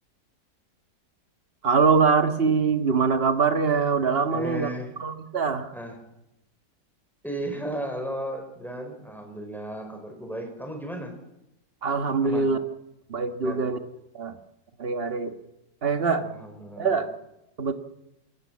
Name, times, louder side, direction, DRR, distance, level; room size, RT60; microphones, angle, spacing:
voice 1, 1.6-4.7 5.0-5.7 11.8-12.6 13.1-13.8 14.1-14.4 14.8-15.4 15.8-16.3 16.8-17.1 17.6-17.7, right 5 dB, 35° right, 9 dB, 1.6 m, -23 dB
voice 2, 4.3-4.9 5.7-6.0 7.2-11.1 12.2-12.5 13.4-13.6 16.2-17.0, right 1 dB, ahead, 4 dB, 4.6 m, -35 dB
27.0 x 15.0 x 7.4 m, 0.88 s
omnidirectional pair, 2.0 m